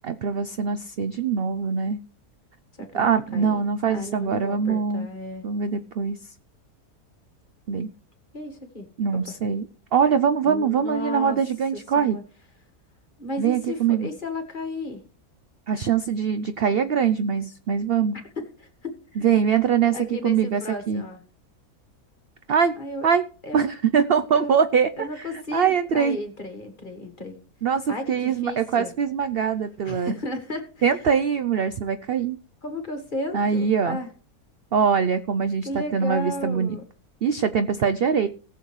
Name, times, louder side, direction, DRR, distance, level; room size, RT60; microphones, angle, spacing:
voice 1, 0.0-2.0 2.9-5.1 5.4-6.2 7.7-7.9 9.0-9.7 9.9-12.2 13.4-14.1 15.7-18.2 19.2-20.0 20.2-20.6 20.9-21.0 22.5-22.7 23.0-23.2 23.5-24.9 25.2-26.2 27.6-30.1 30.8-32.4 33.3-34.0 34.7-36.8 37.2-38.3, right 7 dB, 65° right, 11 dB, 0.6 m, -23 dB
voice 2, 2.8-5.4 8.3-8.9 9.1-9.3 10.4-11.4 11.9-12.2 13.2-15.0 18.4-19.3 19.9-21.2 22.8-23.1 23.4-23.7 24.3-24.5 25.0-27.4 27.9-28.9 29.8-30.9 32.6-34.1 35.6-36.8, left 2 dB, 30° left, 6 dB, 1.8 m, -34 dB
19.0 x 7.0 x 3.2 m, 0.40 s
omnidirectional pair, 1.6 m